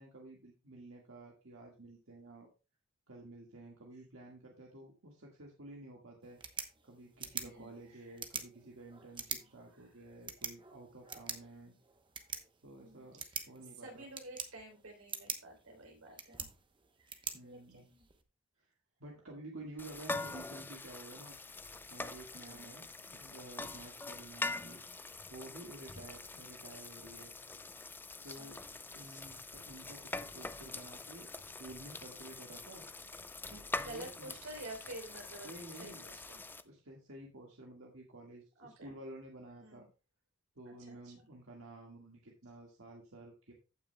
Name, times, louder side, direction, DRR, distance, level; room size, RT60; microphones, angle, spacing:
voice 1, 0.0-2.5 3.1-6.4 6.8-11.8 12.6-14.1 17.3-17.9 18.6-18.7 19.0-21.4 21.9-24.8 25.3-27.3 28.2-28.6 28.9-31.3 31.6-32.9 33.5-34.3 35.4-36.1 36.6-39.9 40.6-43.5, right 2 dB, 70° right, -1 dB, 1.8 m, -51 dB
sound 1, 6.2-18.2, right 6 dB, 25° right, 0.9 m, -46 dB
voice 2, 7.3-8.2 9.3-9.5 12.8-13.5 13.8-16.5 17.0-18.0 22.5-22.8 25.9-26.1 28.2-28.5 29.0-29.2 33.8-35.5 35.8-36.4 38.6-39.0 39.6-39.9 40.7-41.3, right 2 dB, 85° right, 1 dB, 3.5 m, -51 dB
sound 2, 19.8-36.6, left 3 dB, 10° left, 0.4 m, -44 dB
15.5 x 6.0 x 2.3 m, 0.30 s
head